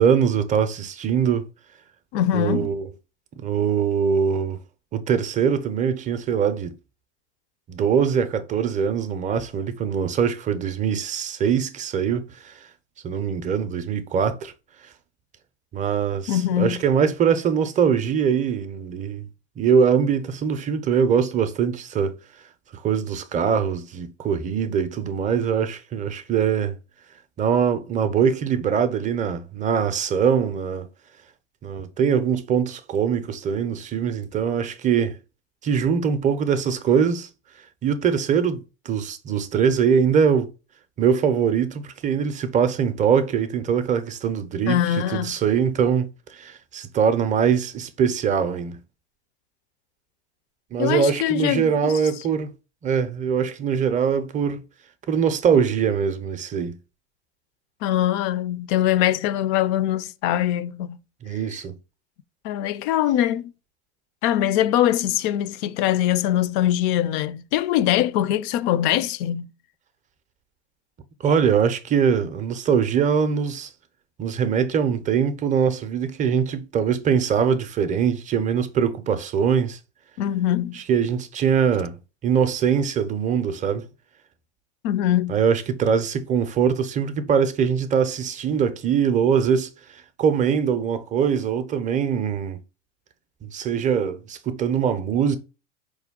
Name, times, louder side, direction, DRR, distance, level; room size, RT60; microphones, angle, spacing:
voice 1, 0.0-1.5 2.3-2.9 3.4-4.6 4.9-6.7 7.7-12.7 13.0-14.5 14.8-14.9 15.7-19.3 19.6-22.2 22.7-26.8 27.4-30.9 31.6-35.2 35.6-37.3 37.8-40.5 41.0-48.8 50.7-52.5 52.8-54.6 55.1-56.8 61.2-61.8 71.2-73.7 74.2-79.8 80.7-83.9 85.3-92.6 93.4-95.4, right 7 dB, 20° right, 0.5 m, -22 dB
voice 2, 2.1-2.7 16.3-16.8 44.7-45.3 50.8-51.9 57.8-61.0 62.4-63.5 64.2-69.5 80.2-80.8 84.8-85.4, left 12 dB, 45° left, 0.4 m, -22 dB
4.7 x 2.2 x 3.6 m
hypercardioid pair, 100°, 35 cm